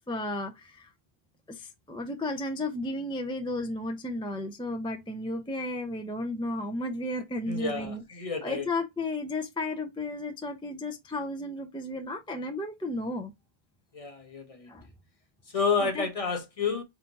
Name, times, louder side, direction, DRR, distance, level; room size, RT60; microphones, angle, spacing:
voice 1, 0.1-0.9 1.5-13.3 14.7-14.9 15.8-16.1, left 2 dB, 5° left, 0.4 m, -33 dB
voice 2, 7.5-8.7 13.9-14.7 15.5-16.8, left 5 dB, 35° left, 0.9 m, -30 dB
4.2 x 3.7 x 2.6 m
omnidirectional pair, 1.0 m